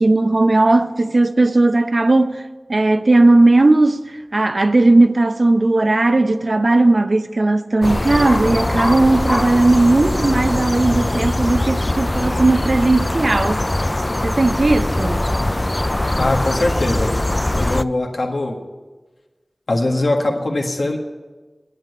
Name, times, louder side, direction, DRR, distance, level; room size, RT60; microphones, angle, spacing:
voice 1, 0.0-2.4 2.7-13.6 14.2-15.3, right 2 dB, 60° right, 0.7 m, -16 dB
sound 1, 7.8-17.8, left 1 dB, 30° left, 0.3 m, -21 dB
voice 2, 16.2-17.1 17.6-18.6 19.7-21.0, left 2 dB, 85° left, 1.7 m, -21 dB
10.0 x 8.4 x 9.4 m
wide cardioid pair, 60°, 0 cm